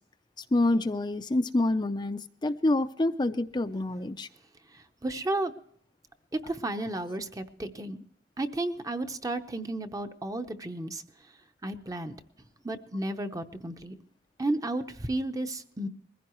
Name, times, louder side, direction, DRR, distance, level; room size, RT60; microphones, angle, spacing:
voice 1, 0.5-4.3, left 2 dB, 25° left, 8 dB, 0.5 m, -27 dB
voice 2, 4.7-5.5 6.3-8.0 8.4-11.0 11.6-12.1 12.6-13.9 14.4-15.9, right 2 dB, 20° right, 8 dB, 0.8 m, -33 dB
21.5 x 15.5 x 3.1 m, 0.63 s
head